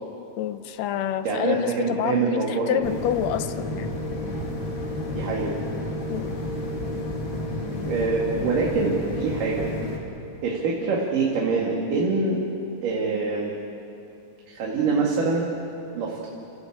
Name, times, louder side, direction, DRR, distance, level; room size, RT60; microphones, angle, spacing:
voice 1, 0.4-3.9 6.1-6.3, left 10 dB, 70° left, 12 dB, 1.7 m, -27 dB
voice 2, 1.2-2.8 5.1-5.6 7.9-9.7 10.4-12.4 12.8-13.5 14.5-15.5 15.9-16.3, right 4 dB, 75° right, -3 dB, 3.7 m, -25 dB
sound 1, 2.8-10.0, left 1 dB, 40° left, 2.9 m, -31 dB
29.0 x 15.5 x 8.6 m, 2.9 s
omnidirectional pair, 3.8 m